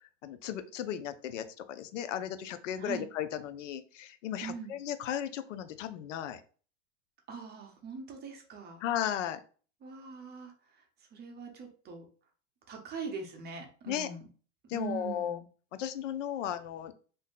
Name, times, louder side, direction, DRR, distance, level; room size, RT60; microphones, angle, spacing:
voice 1, 0.2-6.4 8.8-9.4 13.9-14.1 14.7-15.4 15.8-16.9, left 10 dB, 90° left, 11 dB, 0.5 m, -35 dB
voice 2, 4.4-4.8 7.3-8.8 9.8-10.5 11.1-12.0 12.7-14.3 14.7-15.5, right 5 dB, 25° right, 3 dB, 0.8 m, -42 dB
2.6 x 2.2 x 3.6 m, 0.40 s
hypercardioid pair, 115°, 36 cm